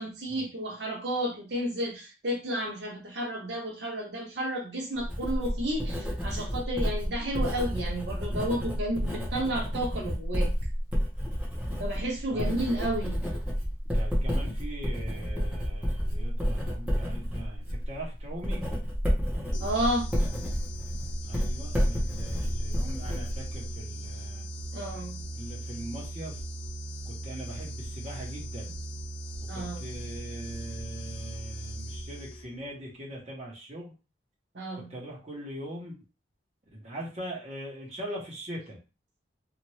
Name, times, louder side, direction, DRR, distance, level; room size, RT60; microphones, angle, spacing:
voice 1, 0.0-10.5 11.8-13.2 19.6-20.1 24.7-25.2 29.5-29.8 34.5-34.9, right 1 dB, 60° right, -1 dB, 0.8 m, -32 dB
Writing, 4.9-23.8, equal, 5° right, 0.9 m, -30 dB
voice 2, 12.3-12.6 13.9-18.6 21.2-24.5 25.3-26.4 27.0-28.7 29.5-33.9 34.7-35.9 36.7-38.8, right 1 dB, 35° right, -3 dB, 0.9 m, -41 dB
sound 1, 19.5-32.7, right 1 dB, 85° left, 0.6 m, -38 dB
2.8 x 2.5 x 3.1 m, 0.31 s
head